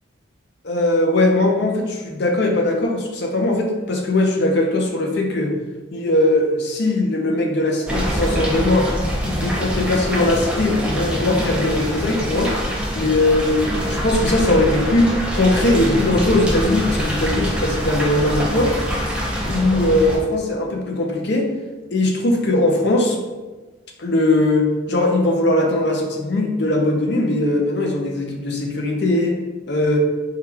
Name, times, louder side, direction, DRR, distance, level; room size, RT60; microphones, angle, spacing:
voice 1, 0.6-5.6 5.9-8.9 9.2-12.5 12.9-18.7 19.1-21.5 21.9-23.2 24.0-29.4 29.7-30.0, left 2 dB, 55° left, 1 dB, 0.6 m, -20 dB
sound 1, 7.9-20.2, equal, 5° right, 0.5 m, -24 dB
4.6 x 2.4 x 3.3 m, 1.2 s
head